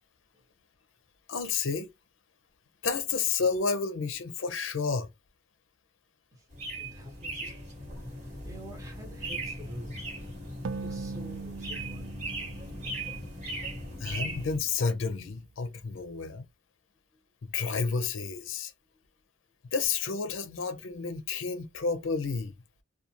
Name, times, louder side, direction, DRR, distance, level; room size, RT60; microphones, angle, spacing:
voice 1, 1.3-1.9 2.8-5.1 14.0-16.4 17.4-18.7 19.7-22.5, left 5 dB, 75° left, 0.5 m, -30 dB
sound 1, 6.5-14.6, right 1 dB, 35° right, 1.3 m, -38 dB
voice 2, 6.8-10.1 10.8-12.1, equal, 15° right, 0.9 m, -48 dB
sound 2, 10.6-14.1, right 5 dB, 70° right, 0.3 m, -41 dB
2.4 x 2.3 x 2.8 m
head